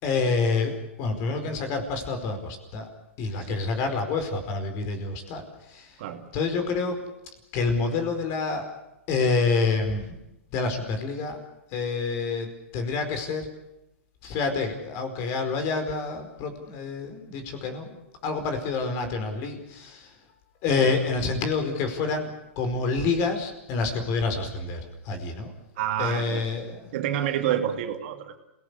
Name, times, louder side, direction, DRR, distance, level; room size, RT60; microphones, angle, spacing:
voice 1, 0.0-2.9 3.2-6.0 6.3-7.1 7.5-8.7 9.1-10.2 10.5-11.4 11.7-13.5 14.2-18.0 18.2-20.1 20.6-22.3 22.6-24.8 25.0-25.5 26.0-26.9, left 4 dB, 45° left, 8 dB, 4.9 m, -27 dB
voice 2, 25.8-28.4, right 10 dB, 55° right, 5 dB, 2.6 m, -29 dB
27.5 x 18.0 x 8.4 m, 0.92 s
hypercardioid pair, 115°, 7 cm